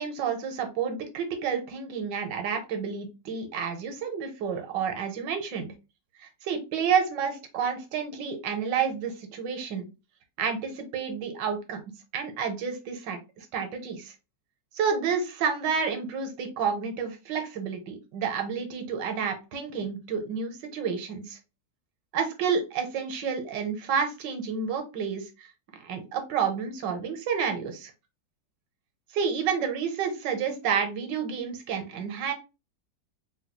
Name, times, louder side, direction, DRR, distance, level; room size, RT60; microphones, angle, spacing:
voice 1, 0.0-5.7 6.2-9.9 10.4-11.8 12.1-14.1 14.7-21.4 22.1-25.5 25.8-27.9 29.1-32.3, right 6 dB, 80° right, 6 dB, 1.4 m, -30 dB
3.8 x 2.3 x 2.9 m, 0.28 s
omnidirectional pair, 1.9 m